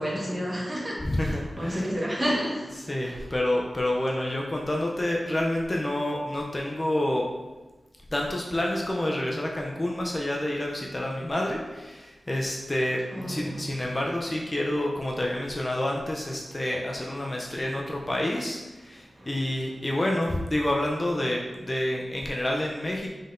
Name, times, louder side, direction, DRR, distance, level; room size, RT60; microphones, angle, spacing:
voice 1, 0.0-3.3 13.0-13.6 19.2-19.3, equal, 30° right, -5 dB, 1.3 m, -31 dB
voice 2, 1.0-1.9 2.8-7.3 8.1-13.0 13.3-23.1, left 1 dB, 25° left, -1 dB, 0.5 m, -28 dB
5.4 x 3.8 x 2.5 m, 1.1 s
wide cardioid pair, 120°, 0 cm